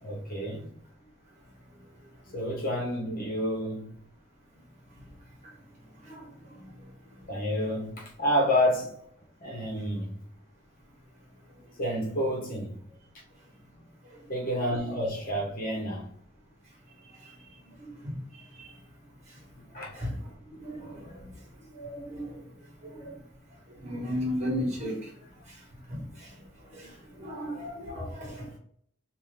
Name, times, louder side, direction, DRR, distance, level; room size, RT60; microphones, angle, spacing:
voice 1, 0.0-0.6 2.3-3.9 7.3-8.9 9.4-10.2 11.8-12.8 14.3-16.1 19.7-19.9, equal, 50° left, -2 dB, 1.1 m, -29 dB
voice 2, 20.6-21.2 21.8-22.2 22.8-23.1 23.8-25.0 25.9-26.0 27.2-28.4, equal, 35° right, -3 dB, 1.6 m, -34 dB
3.6 x 2.7 x 3.3 m, 0.63 s
head